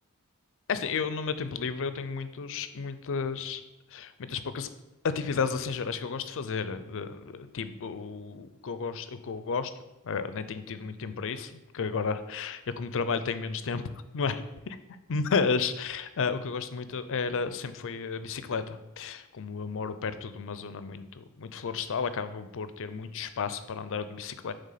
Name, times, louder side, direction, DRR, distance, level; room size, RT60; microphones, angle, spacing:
voice 1, 0.7-3.6 3.9-4.7 5.0-9.7 10.0-14.8 15.1-24.5, left 5 dB, 65° left, 12 dB, 0.5 m, -32 dB
7.4 x 3.4 x 5.7 m, 1.0 s
head